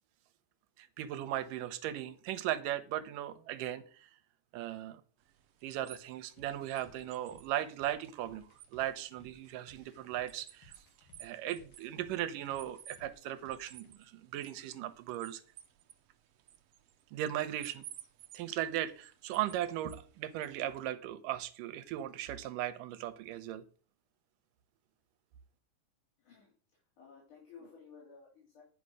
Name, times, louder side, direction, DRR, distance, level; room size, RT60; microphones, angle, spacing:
voice 1, 0.8-4.1 4.5-5.0 5.6-10.7 11.2-15.4 17.1-17.8 18.3-23.6, right 12 dB, 85° right, 13 dB, 2.4 m, -37 dB
sound 1, 5.2-20.8, right 10 dB, 65° right, 1.6 m, -57 dB
sound 2, 6.4-13.9, equal, 45° left, 2.6 m, -61 dB
voice 2, 26.2-26.5 27.0-28.6, left 5 dB, 70° left, -4 dB, 4.6 m, -55 dB
9.7 x 6.0 x 6.4 m, 0.41 s
omnidirectional pair, 3.8 m